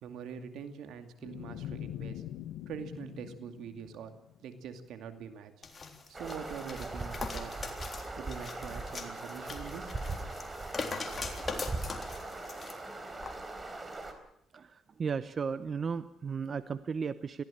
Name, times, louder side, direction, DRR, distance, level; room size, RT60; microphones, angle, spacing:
voice 1, 0.0-2.2 2.7-4.1 4.4-5.5 6.1-7.7 8.2-9.9, right 7 dB, 80° right, 8 dB, 2.4 m, -44 dB
sound 1, 1.2-4.5, left 11 dB, 90° left, 1.0 m, -43 dB
sound 2, 5.6-12.8 13.2-13.3, left 4 dB, 35° left, 3.6 m, -41 dB
sound 3, 6.1-14.1, right 2 dB, 25° right, 4.0 m, -40 dB
voice 2, 14.5-17.4, right 6 dB, 45° right, 13 dB, 0.9 m, -35 dB
22.0 x 15.5 x 8.7 m, 0.73 s
cardioid pair, 90°, 0 cm